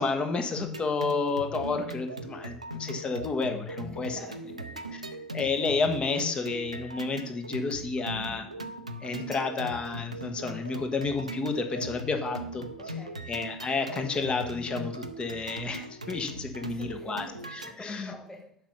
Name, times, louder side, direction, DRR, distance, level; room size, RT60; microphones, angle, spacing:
voice 1, 0.0-4.2 5.3-8.4 9.0-12.7 13.3-17.2 17.5-18.1, left 4 dB, 30° left, 6 dB, 1.3 m, -31 dB
sound 1, 0.6-17.7, right 1 dB, 90° right, 0.5 m, -39 dB
voice 2, 3.9-4.9 8.1-8.5 12.8-13.3 16.7-18.6, left 1 dB, 15° left, -1 dB, 2.7 m, -48 dB
7.4 x 5.4 x 5.9 m, 0.67 s
figure-of-eight pair, 65°, 4 cm